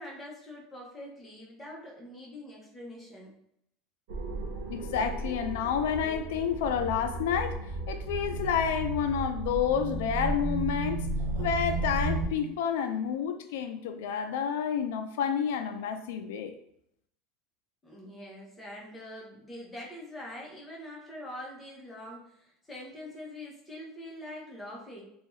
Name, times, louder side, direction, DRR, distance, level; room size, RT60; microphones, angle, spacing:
voice 1, 0.0-3.3 17.8-25.0, left 1 dB, 10° left, -4 dB, 0.8 m, -44 dB
sound 1, 4.1-12.3, right 2 dB, 70° right, 0.6 m, -33 dB
voice 2, 4.7-7.6 7.9-11.1 11.4-16.5, left 7 dB, 90° left, 8 dB, 0.3 m, -29 dB
2.7 x 2.3 x 3.0 m, 0.74 s
supercardioid pair, 155°, 0 cm